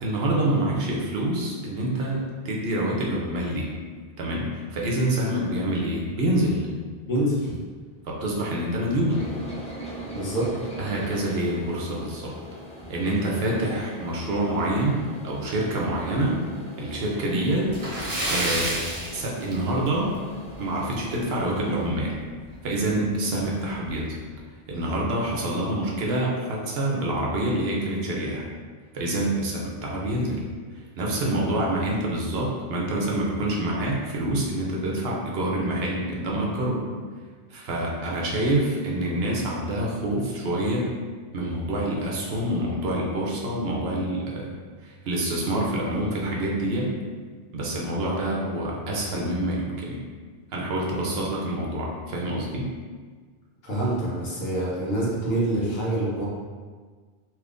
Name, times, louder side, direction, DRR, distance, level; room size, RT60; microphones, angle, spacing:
voice 1, 0.0-3.7 4.2-6.7 8.0-9.3 10.8-12.3 12.9-16.4 16.8-17.8 18.3-18.8 19.1-20.2 20.6-22.2 22.6-24.2 24.7-28.5 28.9-30.4 30.7-36.8 37.5-40.9 41.3-47.0 47.5-50.0 50.5-52.7, right 1 dB, 70° right, -2 dB, 0.9 m, -26 dB
voice 2, 7.1-7.6 10.1-10.5 53.6-56.2, right 1 dB, 65° left, -6 dB, 1.1 m, -26 dB
sound 1, 9.1-21.9, right 1 dB, 10° left, 0.3 m, -41 dB
Splash splatter, 17.7-20.1 20.4-20.5 21.0-21.1 22.5-22.6 22.9-23.0 23.7-23.9, right 1 dB, 40° right, 0.6 m, -29 dB
3.4 x 2.9 x 2.5 m, 1.5 s
omnidirectional pair, 1.1 m